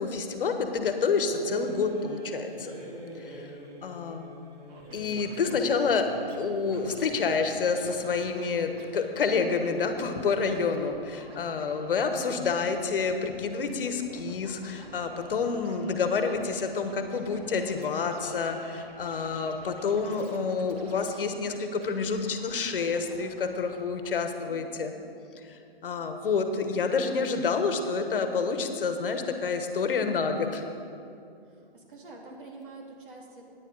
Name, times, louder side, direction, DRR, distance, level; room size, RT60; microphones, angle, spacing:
voice 1, 0.0-2.7 3.2-3.5 3.8-4.3 4.9-6.1 6.4-24.9 25.4-30.6, left 5 dB, 65° left, 7 dB, 1.2 m, -28 dB
sound 1, 1.3-8.9, equal, 40° right, 2.6 m, -45 dB
Scratching (performance technique), 4.7-6.4 6.7-7.3 7.7-8.5 8.8-23.8 24.0-24.1, right 2 dB, 20° right, 1.0 m, -51 dB
voice 2, 24.5-25.1 31.5-33.4, right 3 dB, 60° right, 0 dB, 2.4 m, -47 dB
14.5 x 9.7 x 4.0 m, 2.5 s
hypercardioid pair, 145°, 30 cm